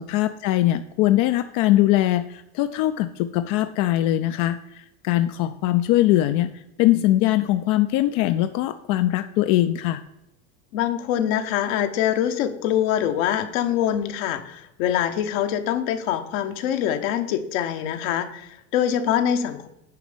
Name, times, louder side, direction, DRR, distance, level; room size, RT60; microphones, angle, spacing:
voice 1, 0.0-10.0, left 14 dB, 55° left, 10 dB, 0.5 m, -21 dB
voice 2, 10.7-19.7, left 10 dB, 70° left, 8 dB, 1.1 m, -24 dB
9.3 x 5.1 x 5.0 m, 0.85 s
supercardioid pair, 105°, 41 cm